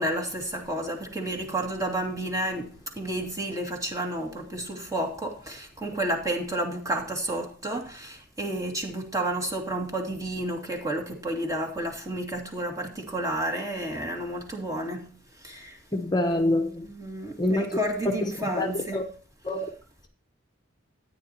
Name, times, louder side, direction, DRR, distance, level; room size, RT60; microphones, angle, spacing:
voice 1, 0.0-15.1 15.4-15.8 16.8-19.0, right 1 dB, 15° right, 2.6 m, -31 dB
voice 2, 15.9-16.9 17.4-17.7 18.6-18.7 18.9-19.0 19.4-19.7, left 1 dB, 20° left, 1.1 m, -25 dB
14.0 x 9.7 x 3.0 m
head